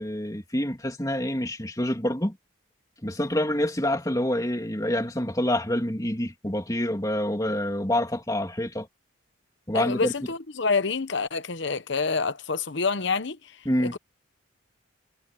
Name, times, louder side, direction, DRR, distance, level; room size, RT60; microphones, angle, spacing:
voice 1, 0.0-2.4 3.0-8.9 9.7-10.1 13.6-14.0, left 1 dB, 15° left, 2.9 m, -27 dB
voice 2, 9.7-13.4 13.9-14.0, left 4 dB, 60° left, 0.9 m, -27 dB
head